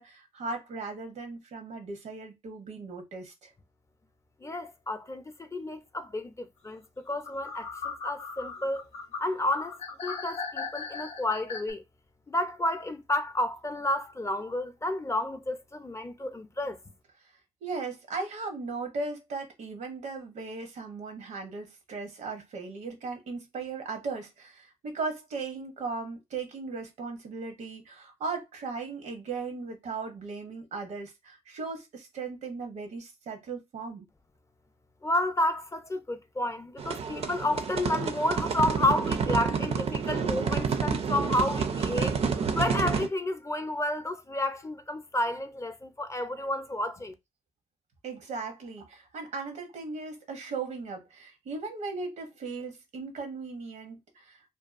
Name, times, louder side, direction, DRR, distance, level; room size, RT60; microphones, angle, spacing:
voice 1, 0.0-3.5 17.6-34.1 48.0-54.4, right 4 dB, 90° right, 0.8 m, -37 dB
voice 2, 4.4-8.9 9.2-11.8 12.3-16.8 35.0-47.1, left 1 dB, 25° left, 0.5 m, -31 dB
sound 1, 7.2-11.7, left 5 dB, 80° left, 0.6 m, -38 dB
sound 2, 36.8-43.1, right 6 dB, 60° right, 0.4 m, -29 dB
2.6 x 2.3 x 2.4 m
cardioid pair, 65°, 12 cm